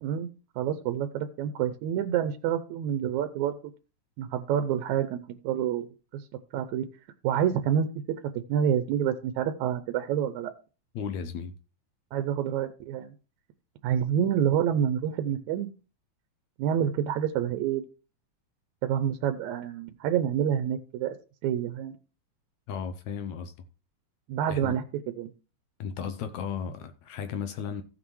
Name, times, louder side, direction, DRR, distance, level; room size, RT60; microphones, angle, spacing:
voice 1, 0.6-3.6 4.2-5.9 6.1-6.3 6.5-6.9 7.2-7.9 8.5-10.5 12.1-13.1 13.8-15.7 16.6-17.8 18.8-21.2 21.4-21.9 24.3-24.8 25.2-25.3, right 9 dB, 80° right, 1.9 m, -27 dB
voice 2, 11.0-11.6 22.7-23.5 24.5-24.8 25.8-27.8, left 7 dB, 75° left, 1.9 m, -35 dB
15.5 x 6.1 x 3.1 m
omnidirectional pair, 3.4 m